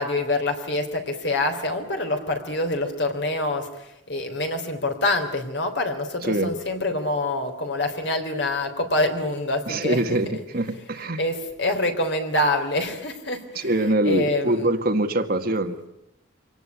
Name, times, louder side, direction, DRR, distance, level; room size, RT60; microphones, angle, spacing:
voice 1, 0.0-3.7 4.1-10.2 11.0-14.6, left 2 dB, 60° left, 5 dB, 3.5 m, -26 dB
voice 2, 9.7-11.2 13.5-15.8, right 1 dB, 50° right, 6 dB, 1.8 m, -24 dB
25.5 x 18.0 x 9.8 m, 0.87 s
head